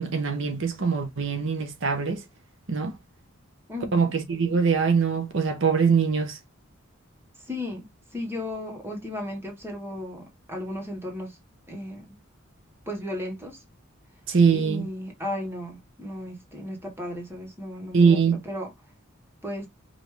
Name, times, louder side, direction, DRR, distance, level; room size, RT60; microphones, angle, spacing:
voice 1, 0.0-2.2 2.7-2.9 3.9-6.4 14.3-14.8 17.9-18.4, right 5 dB, 65° right, 0.9 m, -22 dB
voice 2, 3.7-4.1 7.5-7.9 8.1-11.4 11.7-12.1 12.9-13.6 14.5-18.7 19.4-19.7, left 1 dB, 10° right, 1.3 m, -35 dB
5.1 x 2.6 x 3.1 m
head